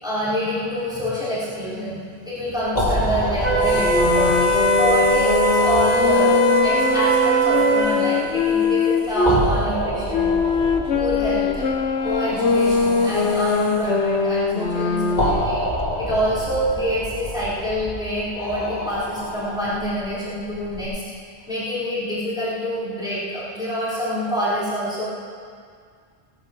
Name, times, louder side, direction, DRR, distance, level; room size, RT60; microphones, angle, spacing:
voice 1, 0.0-2.0 2.3-10.3 10.9-11.7 12.0-15.6 16.0-21.0 21.5-25.0, equal, 5° right, -11 dB, 4.5 m, -26 dB
sound 1, 2.7-20.8, equal, 40° left, 2.2 m, -29 dB
Wind instrument woodwind instrument, 3.4-8.0, right 2 dB, 25° right, 3.8 m, -20 dB
sound 2, 3.7-9.4 10.1-15.5, left 4 dB, 80° left, 1.2 m, -22 dB
18.0 x 14.0 x 4.0 m, 2.1 s
omnidirectional pair, 1.1 m